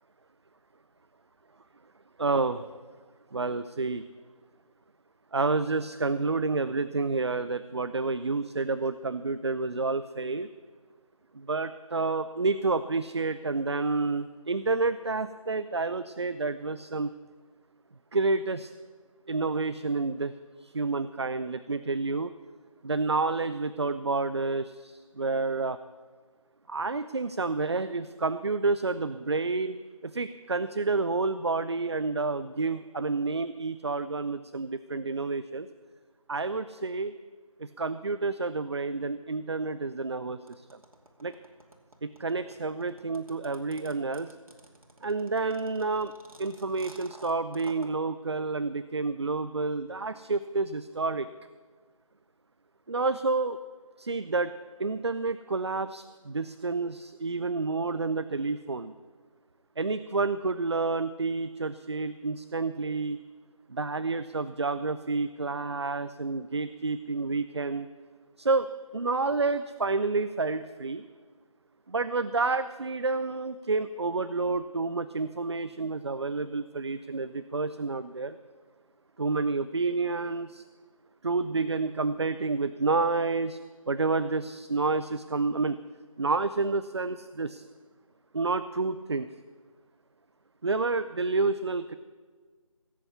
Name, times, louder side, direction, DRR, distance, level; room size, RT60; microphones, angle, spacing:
voice 1, 2.2-2.7 3.3-4.0 5.3-10.5 11.3-17.1 18.1-18.7 19.3-20.3 20.6-22.3 22.8-25.8 26.7-29.8 30.0-35.7 36.3-37.1 37.6-40.8 41.2-41.4 42.0-44.3 45.0-46.1 46.4-51.3 52.9-53.6 54.0-54.5 54.8-58.9 59.8-63.2 63.7-67.9 68.4-71.0 71.9-78.4 79.2-80.6 81.2-83.6 83.9-85.8 86.2-87.6 88.3-89.3 90.6-92.0, right 3 dB, 50° right, 13 dB, 0.5 m, -29 dB
sound 1, 40.5-47.9, right 1 dB, 75° right, 2.5 m, -52 dB
17.0 x 8.2 x 8.3 m, 1.5 s
figure-of-eight pair, 165°, 18 cm